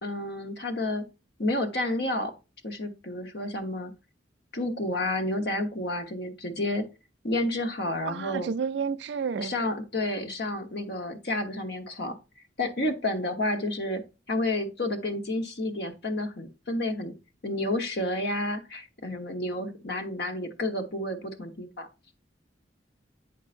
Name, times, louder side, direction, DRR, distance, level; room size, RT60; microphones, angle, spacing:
voice 1, 0.0-1.0 1.4-2.3 2.6-3.9 4.5-6.9 7.2-8.5 9.4-12.2 12.6-14.0 14.3-17.1 17.4-21.9, left 1 dB, 60° left, 1.1 m, -30 dB
voice 2, 8.1-9.5, right 6 dB, 70° right, 0.4 m, -30 dB
8.2 x 5.4 x 2.5 m
head